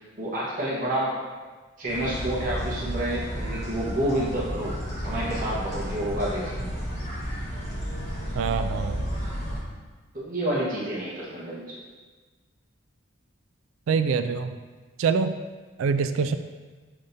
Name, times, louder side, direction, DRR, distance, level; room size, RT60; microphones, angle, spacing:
voice 1, 0.2-1.1 1.8-4.8 5.0-6.8 10.1-11.8, right 1 dB, 40° right, -7 dB, 1.2 m, -29 dB
sound 1, 1.9-9.6, equal, 30° left, 1.4 m, -32 dB
voice 2, 8.3-9.1 13.9-14.6 15.0-15.3 15.8-16.4, right 5 dB, 75° right, 10 dB, 0.3 m, -25 dB
7.0 x 5.1 x 2.7 m, 1.3 s
head